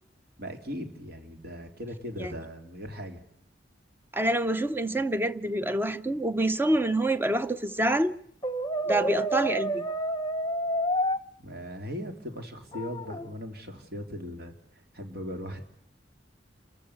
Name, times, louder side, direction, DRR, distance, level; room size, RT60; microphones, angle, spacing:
voice 1, 0.4-3.2 11.4-15.6, equal, 60° right, 3.5 m, -39 dB
voice 2, 4.1-8.1 8.9-9.8, right 1 dB, 10° right, 0.8 m, -26 dB
Brass instrument, 8.4-11.2 12.7-13.3, right 1 dB, 25° left, 1.1 m, -29 dB
28.5 x 15.0 x 8.4 m
head